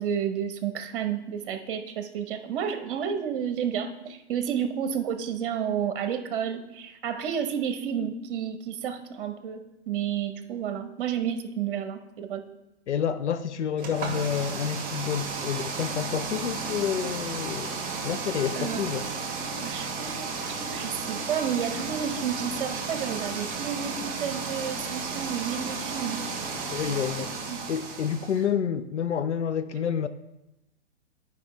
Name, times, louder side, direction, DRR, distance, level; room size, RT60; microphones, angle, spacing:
voice 1, 0.0-12.4 18.6-18.8 19.6-26.2 27.5-27.6, right 8 dB, 50° right, 1.1 m, -31 dB
voice 2, 12.9-17.7 18.0-19.1 26.7-27.3 27.7-30.1, left 8 dB, 80° left, 0.6 m, -29 dB
sound 1, 13.8-28.4, right 4 dB, 25° right, 1.8 m, -33 dB
10.5 x 5.2 x 3.3 m
hypercardioid pair, 120°, 34 cm